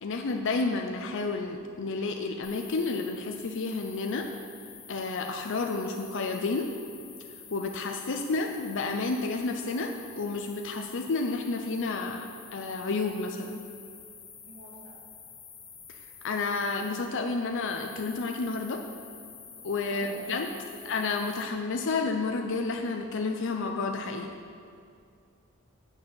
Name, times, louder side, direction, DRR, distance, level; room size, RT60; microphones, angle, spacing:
voice 1, 0.0-4.3 4.9-6.7 7.5-12.3 12.5-13.6 15.9-16.0 16.2-18.8 19.6-20.5 20.9-24.3, left 3 dB, 60° left, 3 dB, 0.5 m, -30 dB
sound 1, 2.4-21.4, left 6 dB, 40° left, 1.4 m, -49 dB
voice 2, 14.5-15.0 19.9-20.9, equal, 50° right, -4 dB, 2.1 m, -48 dB
8.9 x 4.5 x 6.9 m, 2.4 s
head